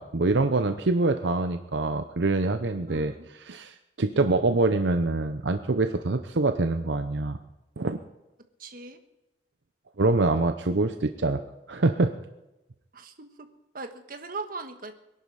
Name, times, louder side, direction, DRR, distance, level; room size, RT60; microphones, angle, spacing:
voice 1, 0.0-3.1 3.4-7.4 7.8-8.0 10.0-11.4 11.7-12.1, right 3 dB, 75° right, 8 dB, 0.8 m, -25 dB
voice 2, 2.9-3.2 8.6-9.0 12.9-13.5 13.7-14.9, right 3 dB, 50° right, 7 dB, 1.5 m, -39 dB
23.0 x 11.0 x 4.9 m, 0.97 s
head